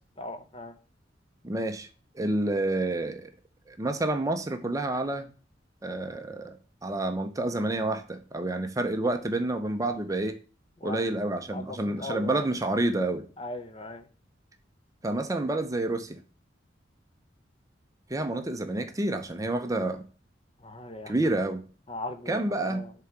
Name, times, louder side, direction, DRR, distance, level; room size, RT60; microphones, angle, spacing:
voice 1, 0.2-0.7 10.8-11.0 11.5-12.5 13.4-14.1 20.6-21.2 21.9-22.9, left 2 dB, 30° left, 8 dB, 0.8 m, -39 dB
voice 2, 1.4-1.9 2.2-3.3 3.7-5.3 5.8-10.3 10.8-13.2 15.0-16.2 18.1-20.0 21.1-21.6 22.3-22.8, right 2 dB, 20° right, 7 dB, 0.6 m, -29 dB
6.9 x 3.8 x 4.5 m, 0.37 s
head